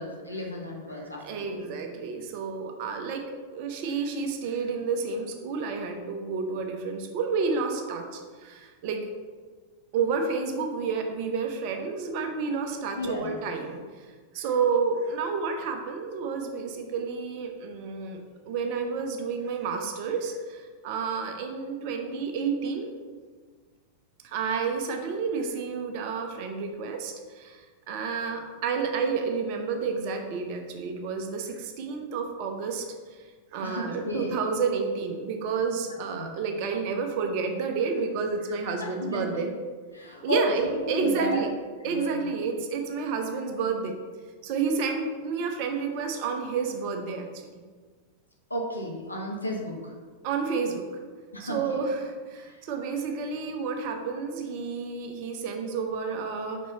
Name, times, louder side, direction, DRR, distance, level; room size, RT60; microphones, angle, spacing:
voice 1, 0.0-1.6 12.9-13.4 33.6-34.4 36.1-36.3 38.7-39.5 39.9-41.4 41.8-42.3 48.5-49.9 51.3-51.8 52.5-52.6, left 1 dB, 85° left, -1 dB, 1.1 m, -33 dB
voice 2, 1.2-3.2 3.5-9.0 9.9-13.8 14.3-22.9 24.2-32.9 33.5-39.5 40.2-41.5 41.8-44.0 44.4-47.5 50.2-50.9 51.4-56.6, right 5 dB, 45° right, 4 dB, 0.8 m, -30 dB
5.3 x 4.7 x 4.0 m, 1.5 s
figure-of-eight pair, 90°, 0 cm